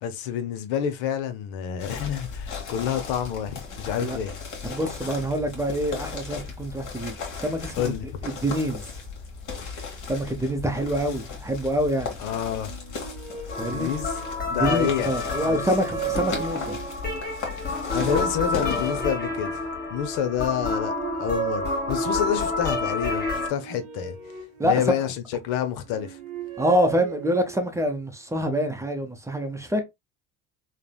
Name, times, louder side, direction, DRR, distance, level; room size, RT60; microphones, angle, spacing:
voice 1, 0.0-4.3 7.8-8.1 12.2-12.7 13.6-14.1 14.5-15.7 17.9-20.9 21.2-24.2 24.6-26.2, left 9 dB, 70° left, 0.7 m, -28 dB
sound 1, 1.8-19.0, left 5 dB, 55° left, 1.3 m, -36 dB
voice 2, 4.6-7.9 8.2-8.8 10.1-12.1 13.6-13.9 14.5-16.8 18.0-18.1 24.6-24.9 26.6-29.8, equal, 10° right, 0.6 m, -26 dB
sound 2, 12.5-14.7 15.2-17.2 17.9-20.0 20.5-22.5 23.2-25.3 25.8-27.8, right 11 dB, 75° right, 1.1 m, -37 dB
sound 3, 13.5-23.5, left 3 dB, 25° left, 1.3 m, -29 dB
3.3 x 2.0 x 2.2 m
hypercardioid pair, 75°, 37 cm